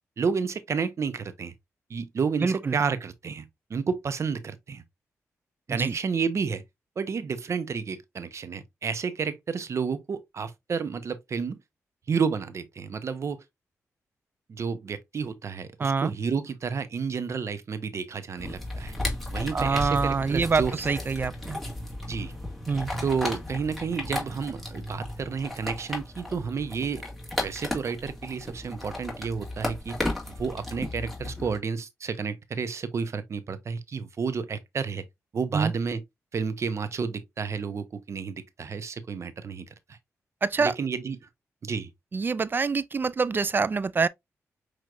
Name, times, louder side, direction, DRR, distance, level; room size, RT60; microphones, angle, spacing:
voice 1, 0.2-1.5 1.9-3.4 3.7-4.8 5.7-6.6 7.0-11.6 12.1-13.4 14.5-18.9 19.3-20.7 22.1-22.4 23.0-27.0 27.4-30.0 30.3-35.0 35.3-36.0 36.3-40.0 40.6-41.2 41.6-41.9, right 5 dB, 55° right, 0.8 m, -31 dB
voice 2, 2.4-2.8 5.7-5.9 15.8-16.1 19.5-21.6 22.7-22.9 35.5-35.7 40.4-40.8 42.1-44.1, right 4 dB, 35° right, 0.3 m, -25 dB
sound 1, 18.4-31.6, left 1 dB, 5° left, 2.2 m, -34 dB
6.0 x 3.1 x 2.5 m
cardioid pair, 75°, 6 cm